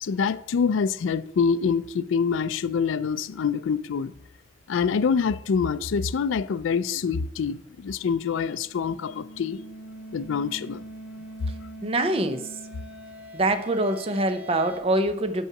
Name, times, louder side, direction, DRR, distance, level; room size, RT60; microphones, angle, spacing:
voice 1, 0.0-4.1 4.7-9.6 10.1-10.8, left 6 dB, 70° left, 0.4 m, -25 dB
sound 1, 8.5-14.8, right 1 dB, 5° right, 3.6 m, -43 dB
voice 2, 11.8-12.4 13.3-15.5, right 1 dB, 30° right, 0.5 m, -24 dB
7.3 x 5.5 x 5.9 m
head